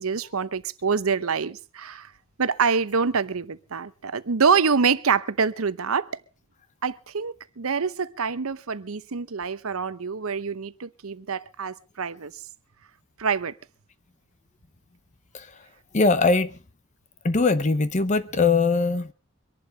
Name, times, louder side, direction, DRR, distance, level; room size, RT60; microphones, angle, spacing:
voice 1, 0.0-2.1 2.4-6.1 6.8-12.3 13.2-13.5, right 5 dB, 75° right, 0.8 m, -26 dB
voice 2, 15.9-16.5 17.2-19.1, left 3 dB, 35° left, 0.7 m, -21 dB
24.5 x 11.0 x 3.9 m
head